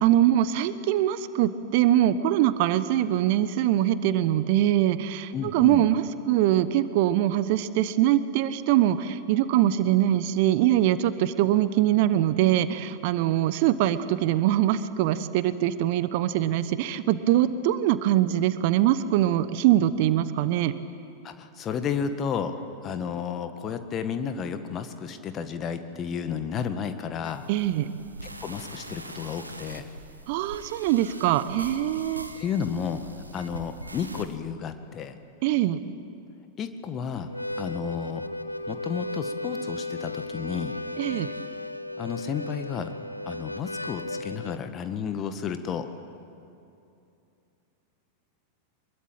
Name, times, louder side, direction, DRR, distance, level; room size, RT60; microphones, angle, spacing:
voice 1, 0.0-20.7 27.5-27.9 30.3-32.3 35.4-35.8 41.0-41.3, right 12 dB, 50° right, 14 dB, 0.9 m, -23 dB
voice 2, 5.3-5.9 21.2-22.6 22.8-27.4 28.2-29.9 32.4-33.0 33.3-35.1 36.6-37.3 37.6-38.2 38.7-40.7 42.0-42.9 43.3-45.9, left 7 dB, 30° left, 8 dB, 1.8 m, -32 dB
sound 1, 27.2-34.3, right 2 dB, 80° right, 1.5 m, -43 dB
Harmonica, 37.2-44.6, left 1 dB, 85° left, 0.7 m, -35 dB
24.0 x 22.0 x 9.1 m, 2.6 s
figure-of-eight pair, 90°, 0 cm